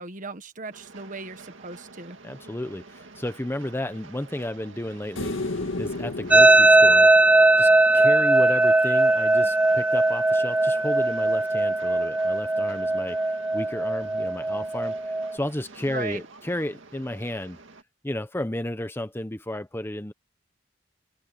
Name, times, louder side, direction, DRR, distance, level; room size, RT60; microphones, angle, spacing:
voice 1, 0.0-2.2 15.9-16.2, right 3 dB, 40° right, 1.5 m, -37 dB
Train, 0.7-17.8, right 3 dB, 75° right, 2.1 m, -48 dB
voice 2, 2.2-7.1 7.6-17.6 18.0-20.1, left 1 dB, 10° left, 1.0 m, -33 dB
sound 1, 5.2-8.4 11.0-11.1, left 2 dB, 85° left, 2.0 m, -33 dB
sound 2, 6.3-15.4, right 2 dB, 5° right, 0.3 m, -19 dB
head